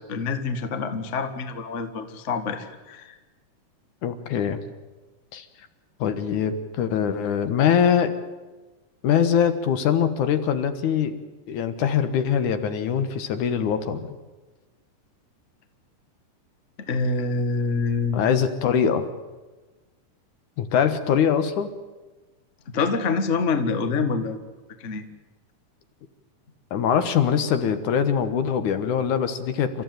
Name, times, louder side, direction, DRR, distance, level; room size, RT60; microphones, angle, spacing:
voice 1, 0.1-3.2 16.8-18.2 22.7-24.4 24.8-25.0, left 4 dB, 30° left, 8 dB, 1.4 m, -26 dB
voice 2, 4.0-4.6 5.3-5.5 6.0-8.1 9.0-11.2 11.5-14.1 18.1-19.1 20.6-21.7 26.7-29.8, left 8 dB, 70° left, 9 dB, 2.7 m, -23 dB
28.5 x 14.5 x 9.3 m, 1.2 s
omnidirectional pair, 3.7 m